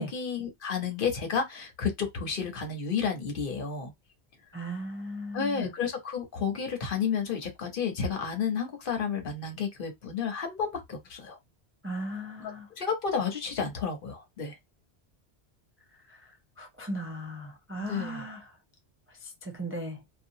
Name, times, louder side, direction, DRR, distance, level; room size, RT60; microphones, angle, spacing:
voice 1, 0.0-3.9 5.3-11.4 12.4-12.5 12.8-14.6 17.8-18.3, left 6 dB, 55° left, 1.0 m, -31 dB
voice 2, 4.5-5.7 11.8-12.7 16.6-18.4 19.4-20.0, right 1 dB, 20° right, 0.3 m, -36 dB
2.8 x 2.3 x 2.6 m
omnidirectional pair, 1.1 m